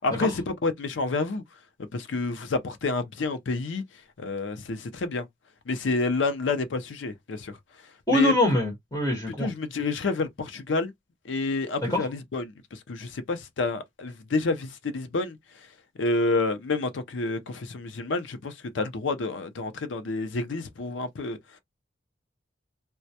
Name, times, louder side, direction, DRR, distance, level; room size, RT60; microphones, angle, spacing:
voice 1, 0.0-1.4 1.8-3.8 4.2-5.3 5.7-7.6 8.1-8.3 9.4-10.9 11.2-15.4 16.0-21.4, left 3 dB, 80° left, 0.5 m, -29 dB
voice 2, 8.1-9.5 11.9-12.0, left 2 dB, 20° left, 1.1 m, -23 dB
2.1 x 2.1 x 2.7 m
head